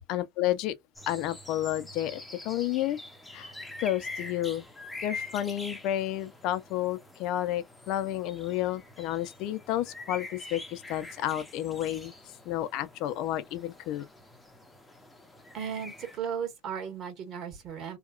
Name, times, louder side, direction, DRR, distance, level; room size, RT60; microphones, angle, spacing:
voice 1, 0.1-0.7 1.1-3.0 3.3-3.5 3.8-4.6 5.0-12.1 12.5-14.0, left 13 dB, 55° left, 0.5 m, -31 dB
sound 1, 1.0-16.2, left 2 dB, 5° left, 0.7 m, -45 dB
voice 2, 15.5-18.0, right 7 dB, 40° right, 1.6 m, -36 dB
2.8 x 2.3 x 2.4 m
supercardioid pair, 120°, 0 cm